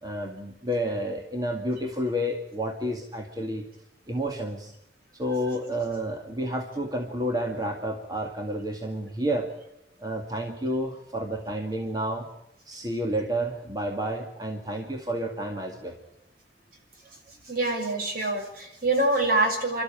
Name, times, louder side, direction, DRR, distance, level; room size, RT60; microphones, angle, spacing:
voice 1, 0.0-3.7 4.1-4.7 5.1-9.5 10.0-12.3 12.7-16.0, equal, 20° right, 1 dB, 2.1 m, -30 dB
voice 2, 17.4-19.8, right 2 dB, 55° right, 2 dB, 6.4 m, -25 dB
30.0 x 13.0 x 8.9 m, 0.87 s
head